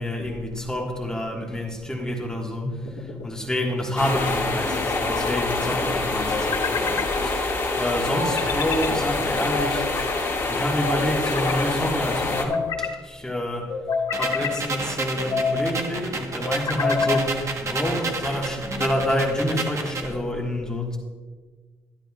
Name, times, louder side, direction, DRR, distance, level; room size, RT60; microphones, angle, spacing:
voice 1, 0.0-9.9 10.5-13.8 14.1-21.0, left 1 dB, 10° left, -2 dB, 1.5 m, -28 dB
sound 1, 2.6-3.3 4.7-5.4 6.3-7.1 8.1-8.9 9.5-10.2 10.8-11.6 12.3-13.0 13.7-14.6 15.2-15.7 16.4-17.3, left 4 dB, 65° left, 1.9 m, -28 dB
sound 2, 4.0-12.4, left 3 dB, 35° left, 1.9 m, -26 dB
sound 3, 14.1-20.1, right 3 dB, 40° right, 1.1 m, -31 dB
12.0 x 10.0 x 2.4 m, 1.5 s
cardioid pair, 85°, 8 cm